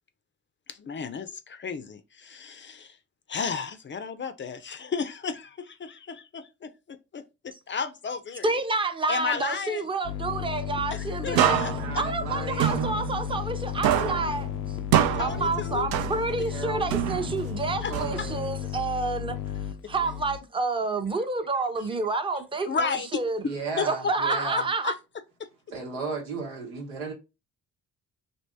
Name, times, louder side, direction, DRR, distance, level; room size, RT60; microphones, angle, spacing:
voice 1, 0.7-3.0 3.3-8.6 9.1-9.9 10.9-12.0 15.1-15.9 17.8-18.3 21.8-21.9 22.6-23.2 23.8-23.9 24.5-25.0 25.4-25.5, left 5 dB, 30° left, 0.5 m, -33 dB
voice 2, 8.4-11.6 12.0-14.5 15.2-19.4 19.9-23.4 23.9-24.9, right 3 dB, 15° right, 0.6 m, -29 dB
sound 1, 10.0-20.4, left 10 dB, 80° left, 0.5 m, -34 dB
voice 3, 11.3-12.9 16.5-16.8 17.9-18.5 20.0-20.2 23.4-24.7 25.7-27.1, right 4 dB, 90° right, 1.0 m, -35 dB
sound 2, 11.4-13.6 13.8-16.5 16.9-18.6, right 10 dB, 65° right, 0.5 m, -27 dB
2.7 x 2.6 x 3.4 m
hypercardioid pair, 50°, 39 cm